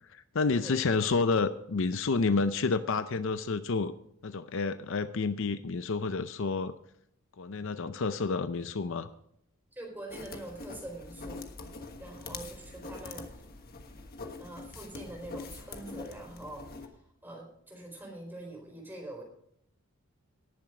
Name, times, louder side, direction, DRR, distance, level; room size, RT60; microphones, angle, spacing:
voice 1, 0.1-3.9 4.2-6.7 7.4-9.1, left 4 dB, 60° left, 12 dB, 0.6 m, -29 dB
voice 2, 9.7-11.4 12.0-13.3 14.4-16.8 17.2-19.2, right 1 dB, 10° right, 0 dB, 4.2 m, -44 dB
sound 1, 10.1-16.9, left 3 dB, 45° left, 1.3 m, -44 dB
18.5 x 7.3 x 4.9 m, 0.71 s
head